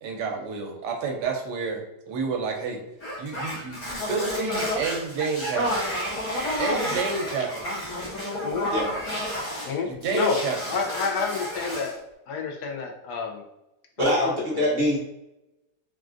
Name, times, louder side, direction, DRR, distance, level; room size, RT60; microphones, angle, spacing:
voice 1, 0.0-1.8 2.1-2.8 3.2-5.9 6.6-7.7 9.9-10.6, right 5 dB, 75° right, 2 dB, 1.2 m, -29 dB
sound 1, 3.0-9.7 10.0-12.0, equal, 60° left, 1.5 m, -30 dB
voice 2, 10.7-11.9 12.3-13.4 14.0-14.6, left 5 dB, 75° left, 1 dB, 1.1 m, -29 dB
voice 3, 14.0-15.0, equal, 45° right, -4 dB, 0.9 m, -23 dB
3.6 x 2.3 x 2.4 m, 0.91 s
omnidirectional pair, 1.8 m